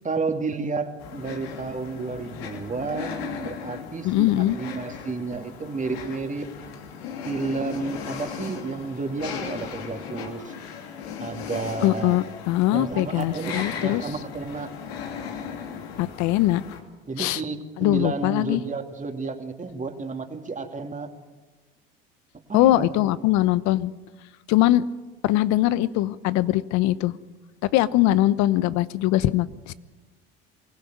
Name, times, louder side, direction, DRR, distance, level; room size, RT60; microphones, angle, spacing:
voice 1, 0.0-6.5 7.2-10.5 11.2-12.2 12.7-14.7 17.1-21.1 22.5-23.1 28.1-28.2, right 4 dB, 25° right, 5 dB, 2.8 m, -31 dB
sound 1, 1.0-16.8, left 7 dB, 85° left, 2.8 m, -37 dB
voice 2, 4.0-4.6 11.8-14.0 16.0-16.6 17.2-17.4 17.8-18.6 22.5-23.9 24.5-24.8 25.2-27.1 27.7-29.7, left 15 dB, 65° left, 17 dB, 1.0 m, -21 dB
23.5 x 17.0 x 9.4 m, 1.3 s
hypercardioid pair, 75°, 30 cm